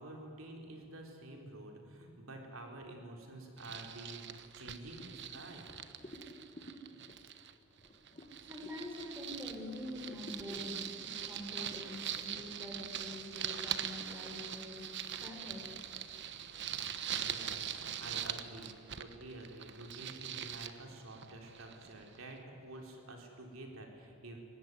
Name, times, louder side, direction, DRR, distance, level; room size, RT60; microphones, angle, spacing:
voice 1, 0.0-5.7 17.2-24.4, right 1 dB, 75° right, 1 dB, 4.0 m, -49 dB
sound 1, 3.6-7.5 7.8-22.2, right 9 dB, 55° right, 1.2 m, -42 dB
sound 2, 5.0-9.6 9.9-11.8, equal, 30° left, 2.1 m, -54 dB
voice 2, 8.5-14.8 15.2-15.7, left 1 dB, 10° right, 1 dB, 4.4 m, -45 dB
24.5 x 19.0 x 9.7 m, 3.0 s
head